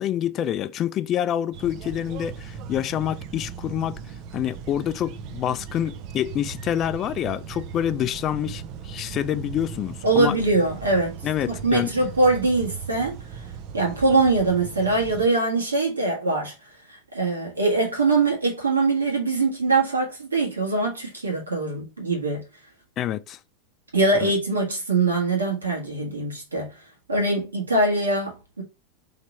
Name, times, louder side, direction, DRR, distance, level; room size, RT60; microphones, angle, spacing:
voice 1, 0.0-4.0 4.3-10.3 11.2-11.9 23.0-23.4 24.2-24.3, left 10 dB, 35° left, 0.3 m, -27 dB
sound 1, 1.5-15.3, right 7 dB, 50° right, 0.5 m, -38 dB
voice 2, 10.0-11.2 11.5-13.4 13.7-16.5 16.9-22.5 23.9-26.7 27.1-28.6, right 3 dB, 90° right, 1.5 m, -23 dB
3.2 x 2.9 x 4.2 m
figure-of-eight pair, 90°, 0 cm